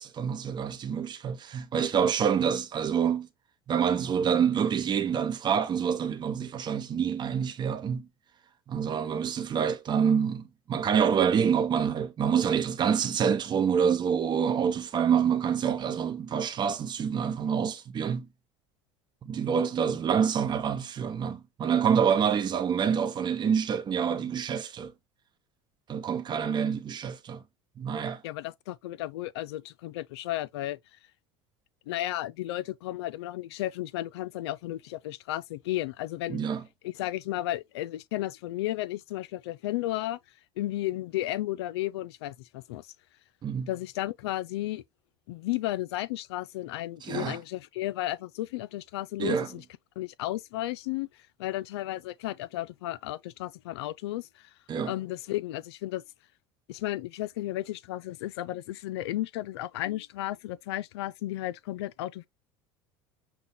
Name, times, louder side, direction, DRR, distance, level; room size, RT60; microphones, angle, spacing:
voice 1, 0.0-3.3 3.7-8.1 8.7-18.3 19.2-24.9 25.9-27.4 27.8-28.2 36.3-36.6 43.4-43.7 47.0-47.4 49.2-49.5 54.7-54.9, right 7 dB, 35° right, 0.8 m, -27 dB
voice 2, 28.2-30.8 31.9-36.4 36.8-40.2 40.6-42.9 43.7-44.8 45.3-49.6 50.0-51.1 51.4-54.5 54.9-56.0 56.7-62.3, left 15 dB, 85° left, 0.4 m, -33 dB
5.8 x 2.2 x 3.4 m
supercardioid pair, 95°, 13 cm